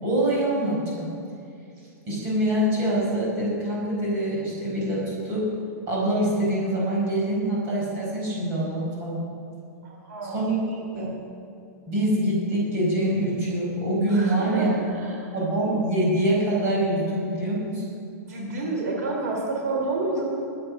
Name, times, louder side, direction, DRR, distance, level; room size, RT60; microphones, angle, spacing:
voice 1, 0.0-1.1 2.1-5.5 5.9-9.2 10.2-11.2 11.9-14.8 15.3-17.8, right 1 dB, 25° right, -5 dB, 4.7 m, -25 dB
voice 2, 9.8-10.4 14.1-15.3 18.3-20.2, right 3 dB, 65° right, -1 dB, 3.2 m, -29 dB
21.0 x 8.8 x 6.4 m, 2.5 s
supercardioid pair, 180°, 9 cm